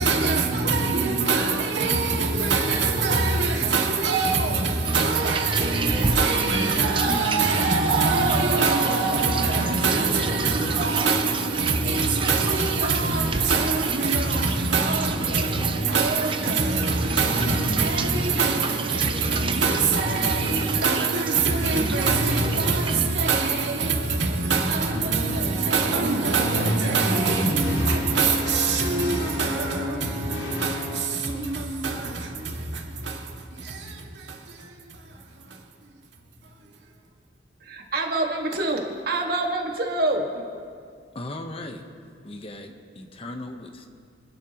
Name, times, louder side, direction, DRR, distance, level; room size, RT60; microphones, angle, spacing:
voice 1, 0.0-35.6, right 3 dB, 75° right, 1.9 m, -24 dB
sound 1, 4.9-23.1, right 4 dB, 30° right, 0.6 m, -33 dB
sound 2, 26.3-31.6, left 2 dB, 90° left, 2.6 m, -39 dB
Brass instrument, 27.0-31.3, left 2 dB, 5° right, 2.2 m, -34 dB
voice 2, 37.6-40.4, right 2 dB, 55° right, 1.8 m, -26 dB
voice 3, 41.1-41.9 42.2-43.9, left 2 dB, 35° left, 1.0 m, -37 dB
26.5 x 11.0 x 3.0 m
head